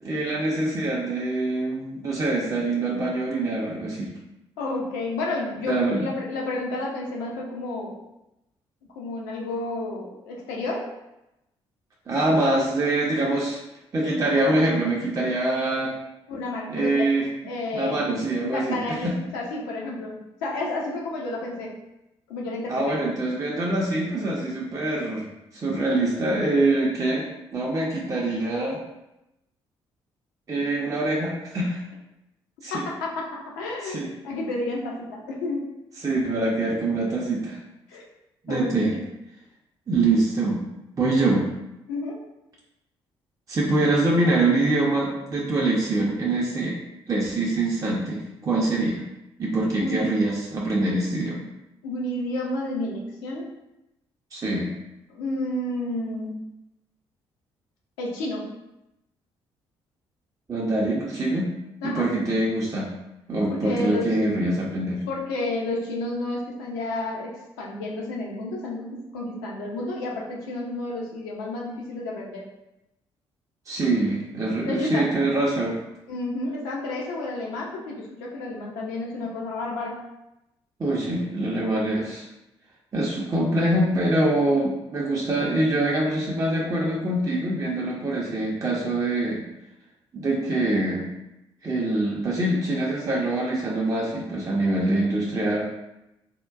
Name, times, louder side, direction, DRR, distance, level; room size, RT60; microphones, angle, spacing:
voice 1, 0.0-4.1 5.7-6.1 12.1-13.6 13.9-16.0 16.7-17.3 17.7-19.2 22.7-25.3 25.5-27.2 27.5-28.8 30.5-31.8 32.6-32.8 33.8-34.1 36.0-37.6 38.4-38.9 39.9-40.6 40.9-41.5 43.5-46.8 47.1-49.0 49.4-51.4 54.3-54.7 60.5-61.5 61.8-62.9 63.3-65.0 73.7-75.8 80.8-82.2 82.9-89.4 90.1-91.1 91.6-95.7, right 2 dB, 25° right, -4 dB, 0.5 m, -24 dB
voice 2, 4.6-8.0 9.0-10.9 16.3-17.1 17.4-18.1 18.5-21.7 22.3-23.0 32.8-35.7 37.9-38.1 38.5-38.8 41.9-42.2 49.7-50.2 51.8-53.5 55.1-56.4 58.0-58.5 61.8-62.1 63.5-64.2 65.1-72.5 74.7-75.1 76.1-80.0, left 2 dB, 65° left, -2 dB, 0.6 m, -31 dB
3.5 x 2.1 x 2.4 m, 0.90 s
figure-of-eight pair, 45°, 14 cm